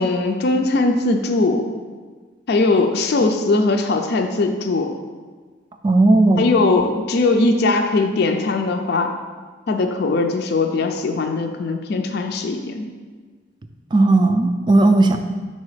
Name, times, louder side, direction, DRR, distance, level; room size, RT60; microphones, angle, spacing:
voice 1, 0.0-1.7 2.5-4.9 6.4-9.1 9.7-12.9, left 3 dB, 55° left, 5 dB, 0.4 m, -20 dB
voice 2, 5.8-6.5 13.9-15.2, right 2 dB, 25° right, 7 dB, 0.3 m, -15 dB
5.3 x 4.0 x 4.8 m, 1.5 s
head